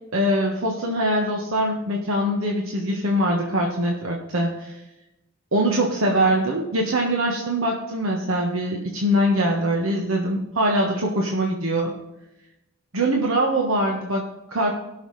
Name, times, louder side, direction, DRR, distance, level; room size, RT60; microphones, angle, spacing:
voice 1, 0.1-4.8 5.5-11.9 12.9-14.7, right 1 dB, 70° right, 0 dB, 1.2 m, -23 dB
17.5 x 6.3 x 3.2 m, 0.94 s
head